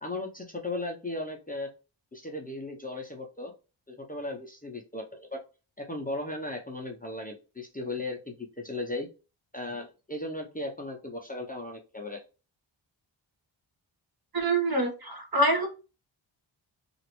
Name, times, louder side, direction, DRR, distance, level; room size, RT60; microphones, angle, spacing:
voice 1, 0.0-1.7 2.1-3.5 3.9-5.4 5.8-9.1 9.5-12.2, left 2 dB, 20° left, 1 dB, 0.6 m, -36 dB
voice 2, 14.3-15.7, right 1 dB, 50° right, 2 dB, 1.1 m, -25 dB
3.0 x 2.5 x 2.9 m, 0.31 s
wide cardioid pair, 85°, 49 cm